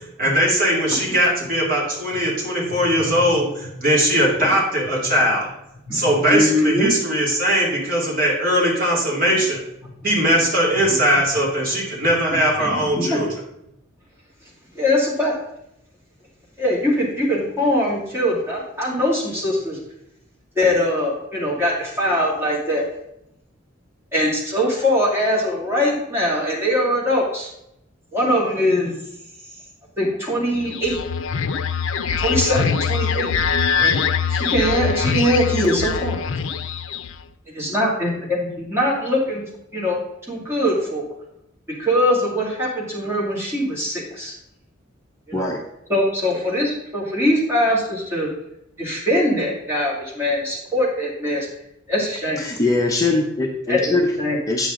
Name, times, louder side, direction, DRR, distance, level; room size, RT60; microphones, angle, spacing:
voice 1, 0.2-5.5 5.9-9.6 10.0-13.3, equal, 45° right, -3 dB, 2.6 m, -20 dB
voice 2, 5.9-6.9 9.8-9.9 10.9-11.0 12.6-13.2 14.7-15.4 16.6-19.8 20.6-22.8 24.1-27.5 28.1-28.9 30.0-31.0 32.2-33.3 33.8-34.0 34.3-36.2 37.6-39.4 39.7-40.0 40.3-41.1 41.7-44.3 45.3-45.5 45.9-48.3 48.8-51.5 51.9-52.4 53.7-54.4, left 1 dB, 10° right, -5 dB, 2.5 m, -22 dB
sound 1, 30.6-37.2, left 6 dB, 80° left, 0.4 m, -23 dB
voice 3, 45.3-45.6 52.4-54.1 54.5-54.7, left 2 dB, 15° left, 0 dB, 0.7 m, -21 dB
8.7 x 6.6 x 3.8 m, 0.82 s
head